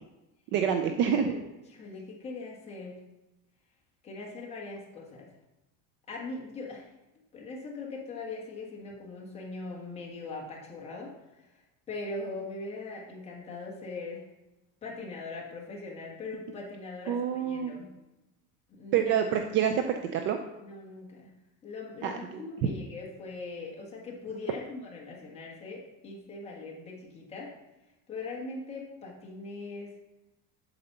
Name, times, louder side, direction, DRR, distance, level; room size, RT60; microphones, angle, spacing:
voice 1, 0.5-1.3 17.1-17.7 18.9-19.8 20.1-20.4 22.0-22.4, right 8 dB, 35° right, 6 dB, 0.4 m, -27 dB
voice 2, 1.7-3.0 4.0-5.3 6.1-6.9 7.3-11.6 11.9-14.2 14.8-17.9 18.7-19.1 20.6-21.3 21.6-27.5 28.1-29.9, left 3 dB, 20° left, -2 dB, 1.5 m, -41 dB
7.9 x 4.2 x 6.7 m, 0.99 s
cardioid pair, 180°, 35 cm